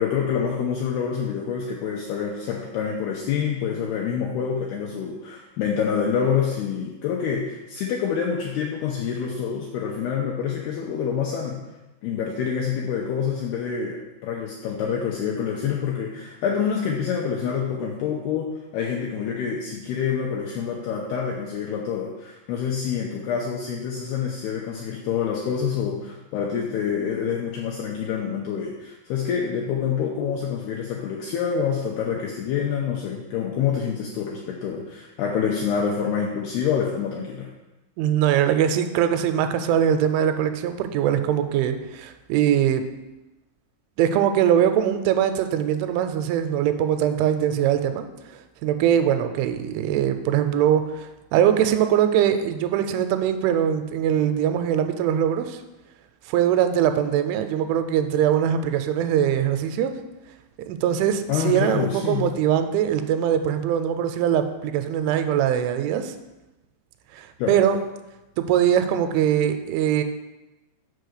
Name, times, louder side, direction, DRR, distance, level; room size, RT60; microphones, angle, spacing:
voice 1, 0.0-11.6 12.0-37.5 61.3-62.3 67.4-67.6, left 7 dB, 85° left, -1 dB, 2.2 m, -27 dB
voice 2, 38.0-42.8 44.0-55.6 56.3-60.0 60.7-66.2 67.1-67.8 68.4-70.0, right 9 dB, 90° right, 8 dB, 3.0 m, -22 dB
6.7 x 4.8 x 6.5 m, 1.0 s
omnidirectional pair, 5.4 m